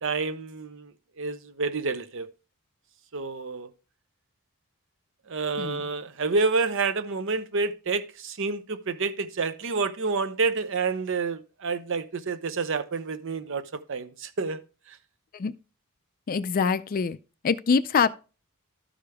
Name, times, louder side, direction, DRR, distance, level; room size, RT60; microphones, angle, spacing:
voice 1, 0.0-2.3 3.1-3.7 5.3-14.6 14.9-15.0, right 4 dB, 60° right, 0.7 m, -29 dB
voice 2, 16.3-17.2 17.4-18.1, left 5 dB, 40° left, 0.4 m, -24 dB
12.5 x 5.0 x 3.4 m
head